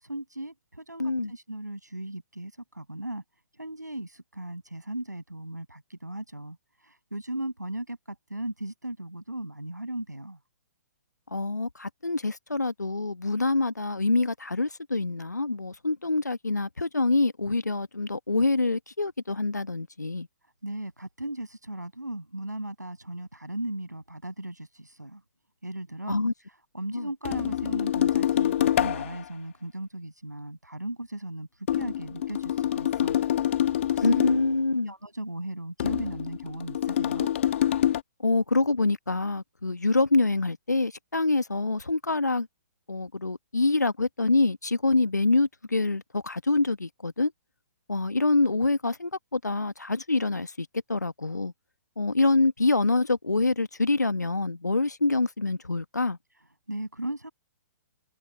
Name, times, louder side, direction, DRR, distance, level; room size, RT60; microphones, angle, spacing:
voice 1, 0.0-3.2 3.6-6.6 6.9-10.4 20.6-25.2 25.6-26.2 26.7-31.5 31.7-33.3 33.9-34.1 34.8-37.3 56.7-57.3, right 1 dB, 85° right, 6.9 m, -37 dB
voice 2, 1.0-1.3 11.3-20.3 26.1-26.3 26.9-27.1 34.0-34.9 38.2-42.5 42.9-47.3 47.9-51.5 52.0-56.2, left 3 dB, 80° left, 1.3 m, -26 dB
sound 1, 27.3-29.3 31.7-34.6 35.8-38.0, left 11 dB, 45° left, 1.5 m, -26 dB
figure-of-eight pair, 125°, 9 cm